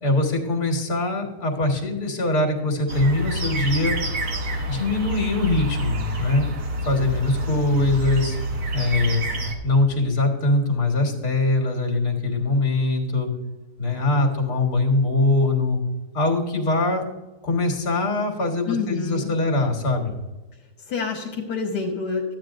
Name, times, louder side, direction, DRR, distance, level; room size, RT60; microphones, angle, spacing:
voice 1, 0.0-4.0 4.7-6.5 6.9-8.4 8.7-9.3 9.6-13.3 13.8-15.8 16.1-17.0 17.4-20.1, left 2 dB, 70° left, 2 dB, 2.0 m, -22 dB
sound 1, 2.9-9.6, right 1 dB, 70° right, 1.6 m, -28 dB
voice 2, 18.7-19.3 20.9-22.3, left 5 dB, 85° left, 0 dB, 1.5 m, -27 dB
12.0 x 8.5 x 2.5 m, 1.1 s
omnidirectional pair, 1.7 m